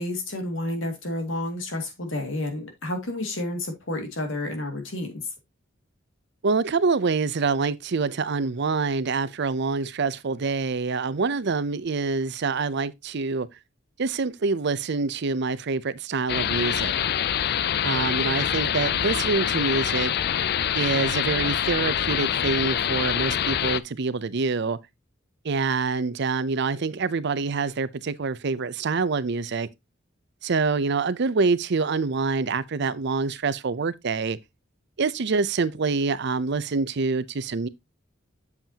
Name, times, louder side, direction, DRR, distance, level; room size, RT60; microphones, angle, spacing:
voice 1, 0.0-5.1, left 1 dB, 75° left, 2.3 m, -30 dB
voice 2, 6.4-13.5 14.0-17.0 17.8-20.1 20.7-24.8 25.4-29.7 30.4-34.4 35.0-37.7, right 4 dB, 60° right, 0.6 m, -26 dB
sound 1, 16.3-23.8, left 9 dB, 55° left, 0.4 m, -25 dB
7.9 x 7.2 x 2.8 m
head